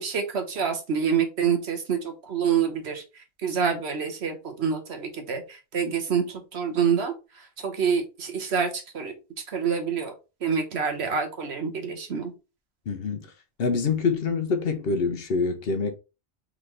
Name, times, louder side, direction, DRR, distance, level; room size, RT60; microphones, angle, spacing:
voice 1, 0.0-9.1 9.5-10.1 10.4-12.3, right 6 dB, 75° right, 1.3 m, -27 dB
voice 2, 12.9-13.3 13.6-16.0, left 4 dB, 65° left, 0.9 m, -25 dB
4.0 x 3.7 x 3.2 m
omnidirectional pair, 1.1 m